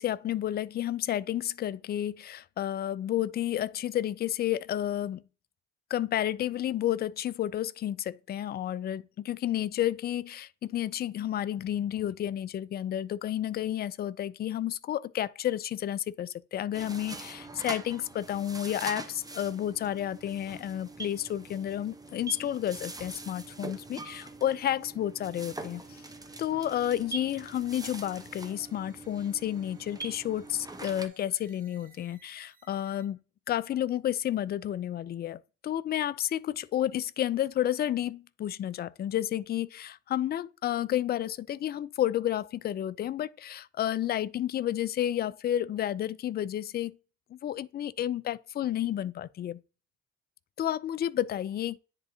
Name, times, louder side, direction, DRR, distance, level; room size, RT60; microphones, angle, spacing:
voice 1, 0.0-5.2 5.9-25.8 26.4-33.2 33.5-47.0 47.3-49.6 50.6-51.8, left 11 dB, 35° left, 0.4 m, -31 dB
sound 1, 16.7-31.1, right 3 dB, 10° right, 0.9 m, -43 dB
sound 2, 25.3-33.1, right 3 dB, 30° right, 1.6 m, -62 dB
10.0 x 3.6 x 2.8 m
hypercardioid pair, 55°, 30 cm